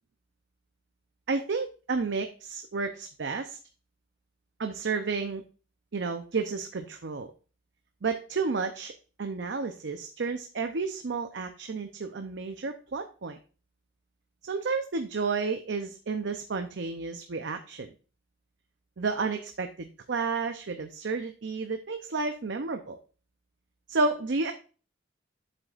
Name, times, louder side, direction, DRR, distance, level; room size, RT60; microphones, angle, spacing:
voice 1, 1.3-3.6 4.6-5.4 5.9-7.3 8.0-8.9 9.2-13.4 14.4-17.9 19.0-23.0 23.9-24.5, right 4 dB, 75° right, 6 dB, 0.6 m, -31 dB
7.9 x 7.5 x 2.5 m, 0.36 s
head